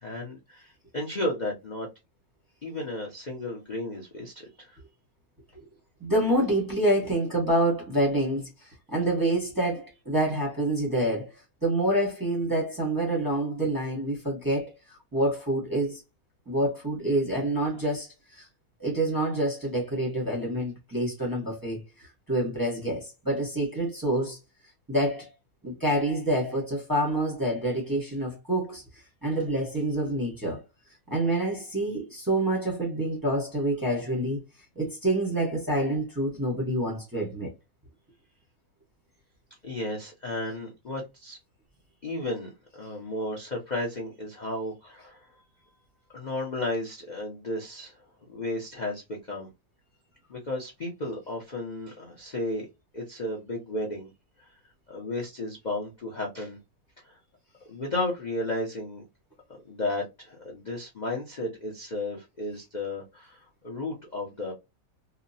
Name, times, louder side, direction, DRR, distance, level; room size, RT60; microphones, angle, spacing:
voice 1, 0.0-1.9 2.6-4.8 39.6-41.4 42.0-45.3 46.1-48.0 48.3-49.5 50.3-52.7 52.9-54.1 54.9-56.6 57.0-57.2 57.7-59.1 59.6-64.5, left 2 dB, 55° left, 0.4 m, -33 dB
voice 2, 6.0-8.5 8.9-11.3 11.6-16.0 16.5-18.5 18.8-24.4 24.9-25.3 25.6-28.8 29.2-30.6 31.1-34.4 34.8-37.5, right 1 dB, 15° right, 0.7 m, -27 dB
2.9 x 2.2 x 2.6 m
omnidirectional pair, 1.9 m